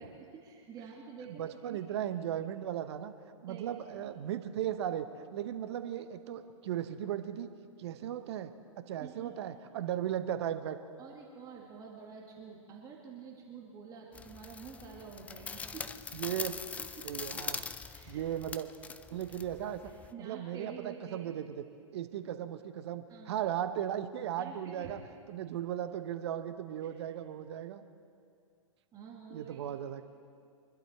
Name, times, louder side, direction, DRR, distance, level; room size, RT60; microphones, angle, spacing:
voice 1, 0.0-1.8 3.5-3.7 9.0-9.3 11.0-15.9 17.0-17.1 17.9-18.2 20.1-21.3 23.1-23.4 24.4-24.9 26.8-26.9 28.9-29.6, right 6 dB, 20° right, -2 dB, 2.0 m, -48 dB
voice 2, 1.3-3.1 3.4-7.5 7.8-8.5 8.8-10.8 16.1-16.5 17.0-17.6 18.1-18.7 19.1-19.8 20.2-21.5 21.9-25.0 25.3-27.8 29.3-30.0, right 10 dB, 50° right, 10 dB, 1.0 m, -36 dB
sound 1, 14.1-20.1, left 5 dB, 10° left, 0.3 m, -42 dB
24.5 x 12.0 x 4.4 m, 2.3 s
figure-of-eight pair, 115°, 17 cm